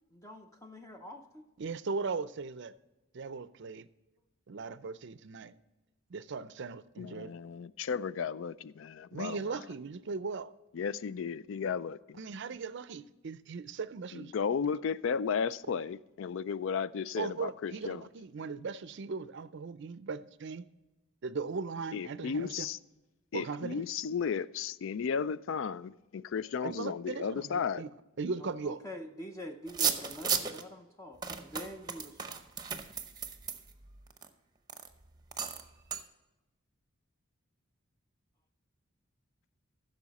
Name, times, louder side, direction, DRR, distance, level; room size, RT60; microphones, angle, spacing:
voice 1, 0.1-1.5 28.4-32.5, equal, 15° left, 0.6 m, -46 dB
voice 2, 1.6-2.7 3.1-3.9 4.5-5.5 6.1-7.3 9.1-10.5 12.2-14.3 17.2-20.6 21.2-22.7 23.3-23.8 26.6-27.9 28.2-28.8, right 4 dB, 55° right, 0.5 m, -38 dB
voice 3, 7.0-9.6 10.7-12.2 14.1-18.1 21.9-22.8 23.3-27.8, left 6 dB, 60° left, 0.4 m, -34 dB
sound 1, 29.7-30.6 31.2-34.3 34.7-34.9 35.3-35.6 35.9-36.0, right 6 dB, 20° right, 0.7 m, -34 dB
14.5 x 6.6 x 4.1 m
head